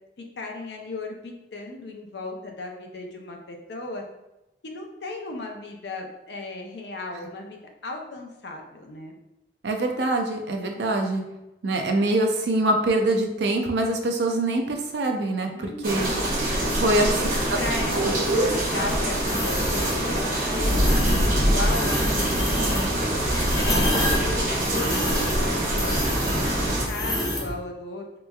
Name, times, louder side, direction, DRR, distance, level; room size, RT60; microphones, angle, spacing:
voice 1, 0.4-4.0 4.6-9.1 15.5-16.4 16.7-23.1 23.6-26.0 26.4-28.0, left 2 dB, 75° left, 2 dB, 0.5 m, -36 dB
voice 2, 9.6-11.2 11.6-16.1 16.7-17.1 17.9-18.5 18.8-18.9, right 2 dB, 75° right, 3 dB, 0.5 m, -24 dB
sound 1, 15.8-26.8, right 1 dB, 50° right, 0.9 m, -24 dB
sound 2, 19.3-20.0 20.6-21.3 21.6-27.5, equal, 20° left, 0.6 m, -28 dB
3.3 x 3.0 x 2.3 m, 0.94 s
head